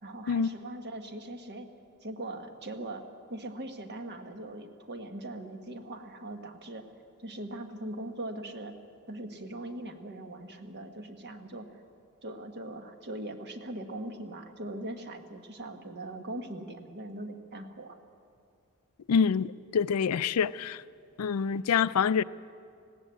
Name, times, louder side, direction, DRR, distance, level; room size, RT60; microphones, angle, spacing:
voice 1, 0.0-1.7 2.0-3.0 3.3-6.9 7.2-8.8 9.1-11.7 12.2-18.0, right 1 dB, 50° right, 1.4 m, -40 dB
voice 2, 19.1-20.8 21.2-22.2, left 6 dB, 80° left, 0.4 m, -26 dB
20.0 x 16.0 x 8.3 m
head